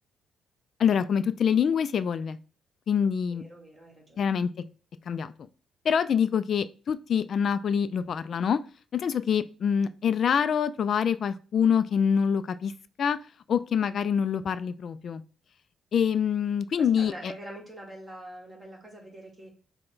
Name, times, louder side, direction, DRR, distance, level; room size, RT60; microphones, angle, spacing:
voice 1, 0.8-2.4 2.9-3.4 4.2-4.5 5.1-5.3 5.8-8.6 8.9-12.7 13.0-13.2 13.5-15.2 15.9-17.3, left 7 dB, 55° left, 13 dB, 0.3 m, -25 dB
voice 2, 3.0-4.3 16.8-19.5, right 1 dB, 25° right, 0 dB, 1.7 m, -44 dB
5.7 x 2.2 x 3.9 m, 0.36 s
cardioid pair, 90°, 0 cm